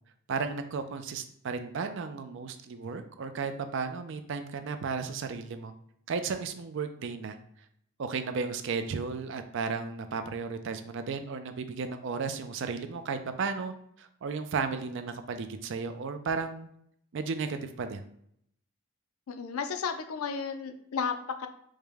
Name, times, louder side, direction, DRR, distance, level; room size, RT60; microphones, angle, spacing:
voice 1, 0.3-5.7 6.1-7.4 8.0-16.7 17.1-18.0, right 5 dB, 55° right, 8 dB, 0.4 m, -34 dB
voice 2, 19.3-21.5, left 6 dB, 80° left, 8 dB, 0.4 m, -33 dB
4.9 x 2.1 x 3.4 m, 0.70 s
head